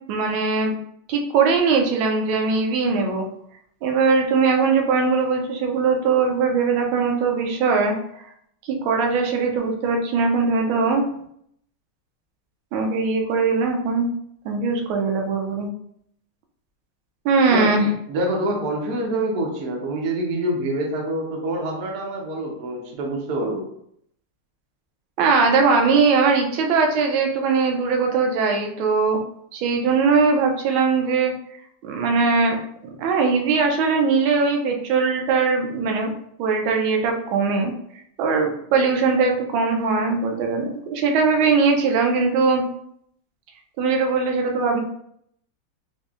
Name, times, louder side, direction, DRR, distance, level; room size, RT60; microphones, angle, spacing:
voice 1, 0.1-0.7 1.1-3.3 3.8-7.9 8.6-11.0 12.7-14.1 14.4-15.7 17.2-17.9 25.2-29.2 29.5-31.3 31.8-32.6 33.0-36.1 36.4-37.7 38.2-42.6 43.8-44.8, right 4 dB, 75° right, 3 dB, 1.4 m, -20 dB
voice 2, 18.1-23.6, right 1 dB, 60° right, 0 dB, 1.1 m, -26 dB
4.1 x 2.6 x 2.4 m, 0.70 s
omnidirectional pair, 2.3 m